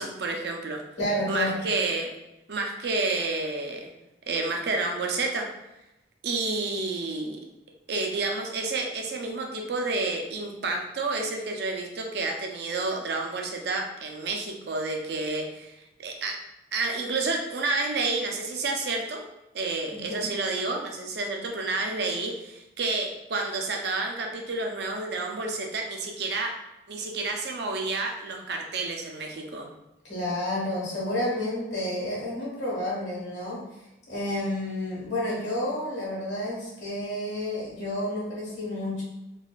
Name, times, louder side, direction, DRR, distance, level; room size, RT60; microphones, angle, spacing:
voice 1, 0.0-0.8 1.3-2.1 2.5-3.9 4.3-5.5 6.2-7.4 7.9-16.3 16.7-19.2 19.5-26.5 26.9-29.7, right 3 dB, 65° right, 1 dB, 0.5 m, -30 dB
voice 2, 1.0-1.6 19.9-20.2 30.0-33.6 34.1-39.0, left 1 dB, 80° left, -5 dB, 1.4 m, -30 dB
3.8 x 2.5 x 2.3 m, 0.93 s
head